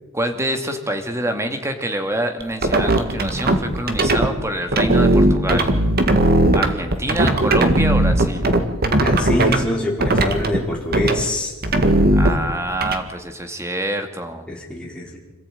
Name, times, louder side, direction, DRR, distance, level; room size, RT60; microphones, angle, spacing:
voice 1, 0.1-5.7 6.5-8.5 12.1-14.5, right 1 dB, 15° right, 6 dB, 2.3 m, -26 dB
sound 1, 2.4-4.3 4.7-9.6 10.0-10.6 10.9-11.2 11.6-12.9, right 1 dB, 45° right, 1.9 m, -17 dB
voice 2, 9.0-11.5 14.5-15.2, left 1 dB, 5° left, -2 dB, 4.7 m, -24 dB
26.5 x 15.0 x 9.1 m, 1.1 s
head